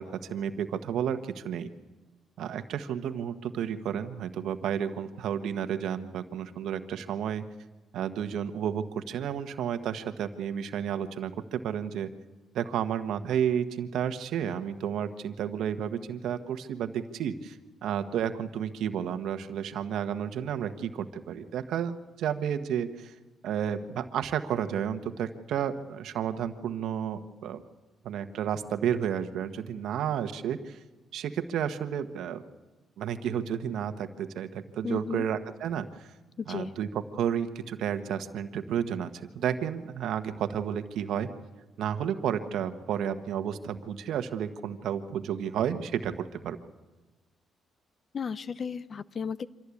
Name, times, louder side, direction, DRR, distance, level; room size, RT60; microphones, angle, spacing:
voice 1, 0.0-1.7 2.4-7.4 7.9-12.1 12.5-23.1 23.4-27.6 28.0-30.8 31.1-32.4 33.0-36.1 36.5-39.1 39.3-41.3 41.8-46.6, right 9 dB, 80° right, 9 dB, 1.3 m, -31 dB
voice 2, 34.8-35.3 36.4-36.7 48.1-49.5, left 6 dB, 45° left, 16 dB, 0.7 m, -34 dB
25.5 x 16.5 x 8.5 m, 1.2 s
cardioid pair, 90°, 0 cm